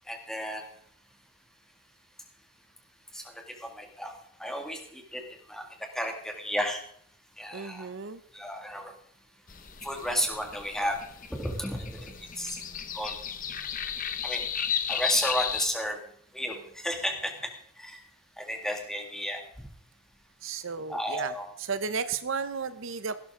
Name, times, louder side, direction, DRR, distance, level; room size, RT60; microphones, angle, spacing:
voice 1, 0.1-0.6 3.1-5.2 5.5-5.6 5.9-6.8 7.4-7.9 8.3-8.9 9.8-11.0 11.3-12.1 12.4-12.6 12.9-13.2 14.2-14.4 14.9-16.0 16.3-17.5 17.8-18.0 18.4-19.7 20.9-21.5, equal, ahead, 3 dB, 2.0 m, -33 dB
voice 2, 7.5-8.2 20.4-21.3 21.6-23.2, right 5 dB, 70° right, 12 dB, 0.7 m, -33 dB
sound 1, 9.5-15.7, left 8 dB, 40° left, 0.9 m, -34 dB
16.0 x 12.0 x 3.7 m, 0.67 s
head